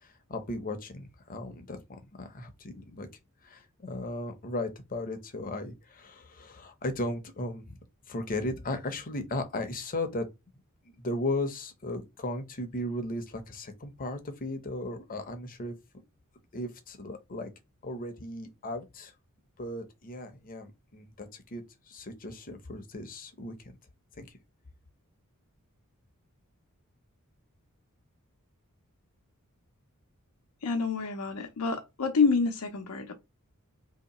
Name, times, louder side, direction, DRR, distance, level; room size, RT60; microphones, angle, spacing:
voice 1, 0.0-3.1 3.4-7.8 8.1-10.3 11.0-15.8 16.5-17.5 17.8-19.1 19.6-23.7 24.2-24.3, left 1 dB, 40° left, 0.7 m, -36 dB
voice 2, 30.6-33.1, left 4 dB, 85° left, 0.7 m, -27 dB
3.0 x 2.8 x 4.1 m
head